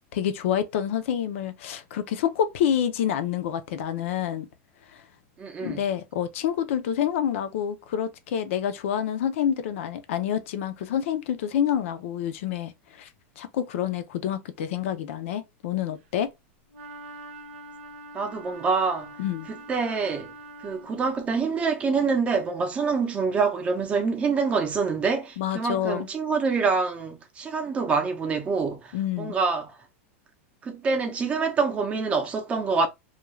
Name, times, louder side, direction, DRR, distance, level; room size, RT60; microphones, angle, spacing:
voice 1, 0.1-4.5 5.6-13.1 13.4-16.3 19.2-19.5 25.4-26.1 28.9-29.3, left 9 dB, 65° left, 0.5 m, -28 dB
voice 2, 5.4-5.8 18.1-19.1 19.5-20.3 20.6-29.7 30.6-32.9, right 4 dB, 15° right, 0.6 m, -26 dB
Wind instrument woodwind instrument, 16.7-21.2, right 2 dB, 60° right, 0.7 m, -44 dB
2.4 x 2.3 x 3.0 m
supercardioid pair, 155°, 7 cm